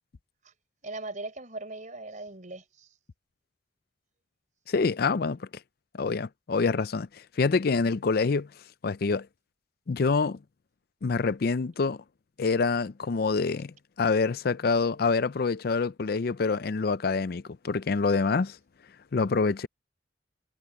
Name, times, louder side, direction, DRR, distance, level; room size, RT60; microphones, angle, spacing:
voice 1, 0.8-2.9, right 2 dB, 45° right, 4.3 m, -39 dB
voice 2, 4.7-5.5 5.9-8.5 8.8-9.3 9.9-10.4 11.0-12.0 12.4-18.6 19.1-19.7, left 4 dB, 55° left, 0.5 m, -26 dB
head